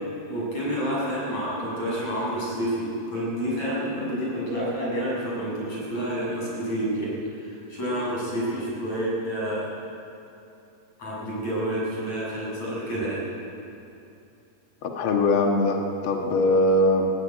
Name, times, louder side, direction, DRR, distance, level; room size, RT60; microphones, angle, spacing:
voice 1, 0.3-2.9 3.1-7.1 7.4-9.6 11.0-13.2, equal, 40° left, -5 dB, 7.9 m, -29 dB
voice 2, 14.8-17.1, left 1 dB, 85° left, 2 dB, 1.1 m, -21 dB
18.0 x 17.0 x 9.2 m, 2.7 s
omnidirectional pair, 5.0 m